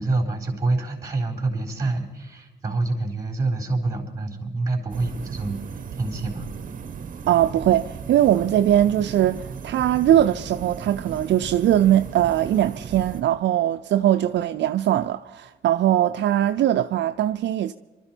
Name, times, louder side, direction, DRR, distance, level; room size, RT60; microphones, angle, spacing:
voice 1, 0.0-5.6 6.0-6.5, right 2 dB, 15° right, 3.8 m, -26 dB
sound 1, 4.9-13.2, right 6 dB, 45° right, 1.0 m, -37 dB
voice 2, 7.3-17.7, right 12 dB, 60° right, 0.5 m, -21 dB
23.5 x 13.0 x 4.5 m
cardioid pair, 90°, 20 cm